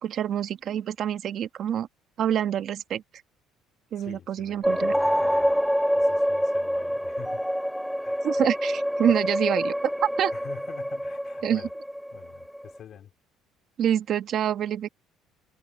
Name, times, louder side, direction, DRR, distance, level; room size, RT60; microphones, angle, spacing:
voice 1, 0.0-1.9 2.2-3.0 3.9-5.0 8.2-10.3 11.4-11.6 13.8-14.9, right 9 dB, 50° right, 1.4 m, -26 dB
voice 2, 4.0-5.5 5.9-7.5 8.0-8.5 9.1-9.2 10.3-11.7 12.1-13.1, left 9 dB, 50° left, 3.4 m, -46 dB
sound 1, 4.6-12.8, equal, ahead, 0.5 m, -26 dB
cardioid pair, 120°, 0 cm